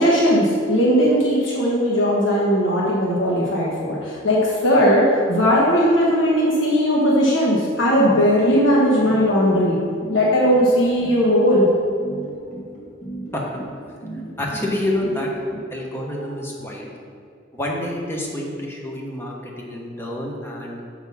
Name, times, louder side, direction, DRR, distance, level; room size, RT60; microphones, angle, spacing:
voice 1, 0.0-9.8 10.1-11.7, equal, 85° left, -5 dB, 1.3 m, -18 dB
sound 1, 8.0-15.6, right 2 dB, 40° left, 1.8 m, -35 dB
voice 2, 14.4-15.3 15.7-16.9 17.5-20.8, left 1 dB, 15° left, -2 dB, 1.0 m, -28 dB
6.5 x 4.8 x 5.5 m, 2.3 s
head